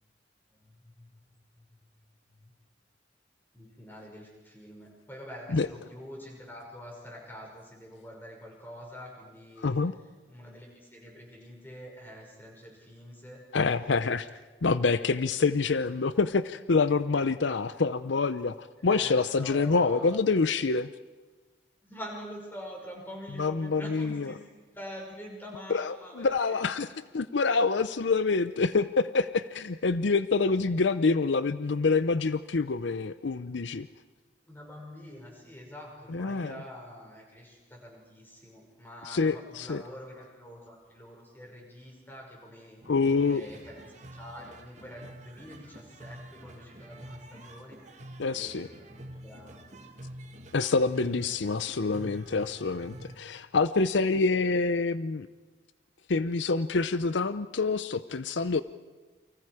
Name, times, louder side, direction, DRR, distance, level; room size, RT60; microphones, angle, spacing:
voice 1, 0.6-1.1 1.6-2.0 2.4-2.5 3.5-9.7 10.3-13.4 18.8-20.2 21.8-24.4 24.7-26.6 34.5-42.8 43.2-49.6, equal, 10° left, -1 dB, 5.7 m, -46 dB
voice 2, 9.6-9.9 13.5-14.3 14.6-20.9 23.4-24.3 25.7-33.9 36.1-36.6 39.1-39.8 42.9-43.4 48.2-48.7 50.5-55.3 56.1-58.6, left 4 dB, 80° left, 13 dB, 0.6 m, -26 dB
sound 1, 42.8-53.2, right 1 dB, 40° right, 2.0 m, -47 dB
29.5 x 24.5 x 4.9 m, 1.3 s
head